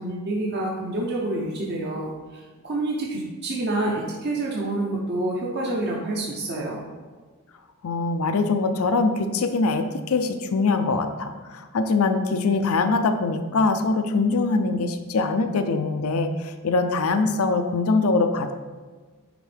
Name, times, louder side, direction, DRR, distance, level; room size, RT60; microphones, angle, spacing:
voice 1, 0.0-6.8, right 2 dB, 50° right, -3 dB, 0.8 m, -28 dB
voice 2, 7.8-18.5, left 3 dB, 80° left, 7 dB, 0.5 m, -23 dB
9.9 x 3.6 x 3.4 m, 1.4 s
head